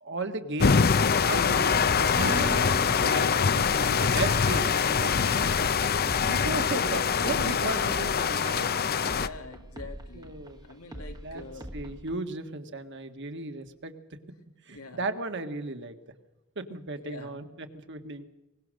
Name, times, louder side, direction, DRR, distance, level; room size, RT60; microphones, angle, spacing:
voice 1, 0.0-1.0 1.3-3.3 3.8-5.5 6.3-8.7 10.1-10.6 11.2-11.4 11.7-13.9 14.7-16.0 16.6-18.2, right 2 dB, 55° right, 7 dB, 1.7 m, -35 dB
sound 1, 0.6-9.3, left 6 dB, 45° left, 0.7 m, -24 dB
sound 2, 2.1-8.8, right 3 dB, 35° right, 0.7 m, -41 dB
sound 3, 5.4-12.2, equal, 20° right, 1.2 m, -43 dB
voice 2, 6.7-7.1 9.1-11.7 14.7-15.1 17.0-17.5, left 3 dB, 90° left, 4 dB, 2.7 m, -45 dB
23.5 x 20.5 x 6.5 m, 0.96 s
head